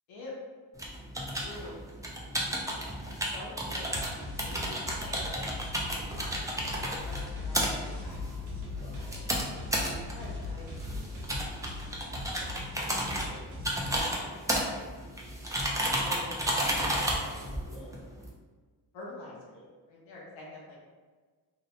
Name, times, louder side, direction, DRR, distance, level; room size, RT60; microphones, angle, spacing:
sound 1, 0.8-18.3, right 1 dB, 10° right, 0.4 m, -33 dB
voice 1, 1.3-1.9 3.1-4.0 4.4-8.2 9.8-12.5 13.9-15.0 16.0-17.5 18.9-19.4 19.9-20.8, left 2 dB, 90° left, -5 dB, 0.7 m, -47 dB
sound 2, 3.9-14.0, left 1 dB, 85° right, 0.9 m, -42 dB
sound 3, 7.0-12.9, left 5 dB, 35° right, 0.7 m, -43 dB
voice 2, 8.8-9.3 13.1-13.4 17.3-18.1 19.3-19.7, left 1 dB, 55° left, -4 dB, 0.9 m, -50 dB
2.7 x 2.1 x 2.7 m, 1.4 s
cardioid pair, 75°, 46 cm